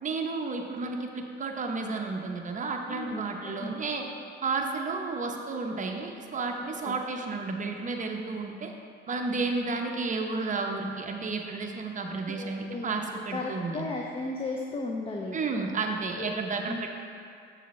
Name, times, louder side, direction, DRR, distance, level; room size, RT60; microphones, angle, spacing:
voice 1, 0.0-4.0 4.4-8.7 9.1-13.9 15.3-16.9, right 4 dB, 40° right, 3 dB, 0.8 m, -32 dB
voice 2, 2.9-3.7 6.6-7.0 12.3-15.5 16.2-16.3 16.7-16.9, left 3 dB, 30° left, 0 dB, 0.6 m, -36 dB
7.0 x 6.8 x 3.1 m, 2.4 s
cardioid pair, 90°, 20 cm